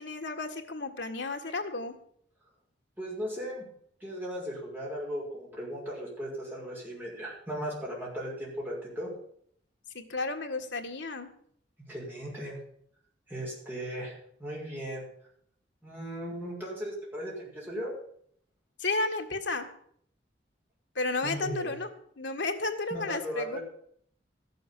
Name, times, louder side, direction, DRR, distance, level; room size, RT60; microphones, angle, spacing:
voice 1, 0.0-2.0 9.9-11.3 18.8-19.7 21.0-21.9 22.2-23.6, left 3 dB, 70° left, 4 dB, 1.7 m, -32 dB
voice 2, 3.0-3.6 4.0-9.1 11.9-12.6 13.3-14.1 14.4-15.0 15.8-17.9 21.2-21.7 22.9-23.6, equal, 10° right, -5 dB, 5.7 m, -37 dB
14.0 x 6.9 x 9.1 m, 0.65 s
head